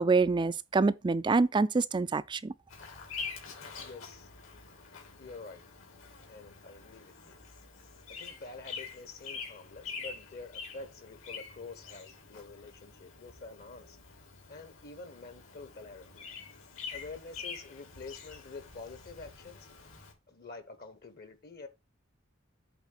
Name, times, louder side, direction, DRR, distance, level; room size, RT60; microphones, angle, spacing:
voice 1, 0.0-2.5, right 4 dB, 25° right, 0.4 m, -26 dB
Bird vocalization bird call bird song, 2.7-20.1, left 5 dB, 80° left, 3.0 m, -46 dB
voice 2, 3.8-4.3 5.2-5.6 6.3-7.4 8.1-14.0 14.5-16.3 16.9-19.7 20.3-21.7, left 3 dB, 50° left, 1.1 m, -47 dB
8.3 x 3.7 x 6.5 m
head